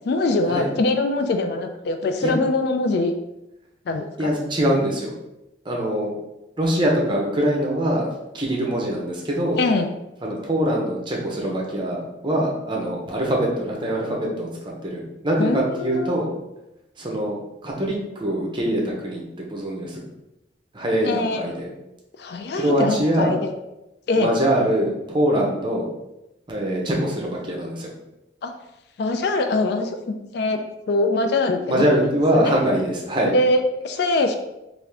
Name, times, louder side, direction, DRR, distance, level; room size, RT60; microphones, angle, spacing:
voice 1, 0.1-3.1 3.9-4.3 9.6-9.9 15.4-16.1 21.0-21.5 22.2-23.5 24.1-24.3 28.4-28.5 29.0-30.6 30.9-32.5 33.3-34.4, left 2 dB, 60° left, 6 dB, 0.3 m, -23 dB
voice 2, 4.2-5.1 5.6-6.1 6.6-8.1 8.3-9.6 10.2-16.3 17.0-19.2 19.5-20.0 20.7-21.7 22.5-23.3 24.2-25.9 26.5-27.9 31.6-33.3, right 1 dB, 25° right, -2 dB, 0.7 m, -23 dB
3.5 x 2.5 x 3.3 m, 0.93 s
head